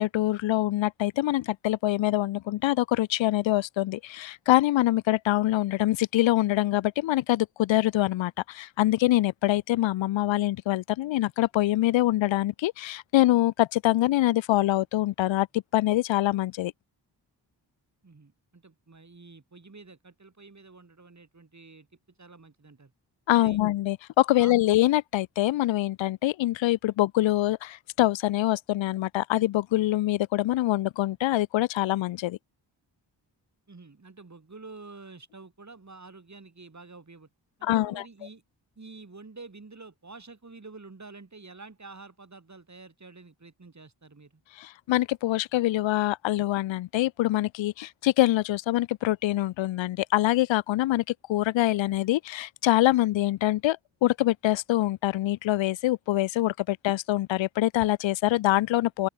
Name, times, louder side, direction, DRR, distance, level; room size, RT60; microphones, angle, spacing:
voice 1, 0.0-16.7 23.3-32.4 37.6-38.0 44.6-51.0 51.3-59.1, left 15 dB, 90° left, 0.6 m, -24 dB
voice 2, 18.0-21.9 22.2-22.9 23.3-23.6 24.3-24.5 33.7-37.3 37.6-38.4 38.8-44.4, right 3 dB, 40° right, 6.5 m, -48 dB
open air
cardioid pair, 50°, 45 cm